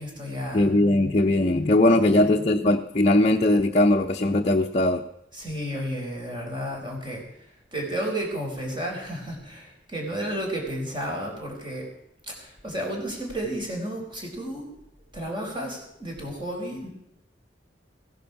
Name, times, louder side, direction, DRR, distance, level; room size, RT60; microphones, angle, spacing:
voice 1, 0.0-0.7 2.0-2.3 5.3-11.9 12.2-14.7 15.1-16.9, right 1 dB, 25° right, 0 dB, 4.5 m, -32 dB
voice 2, 0.5-5.0, left 1 dB, 40° left, 1 dB, 0.7 m, -20 dB
16.0 x 10.5 x 5.9 m, 0.79 s
head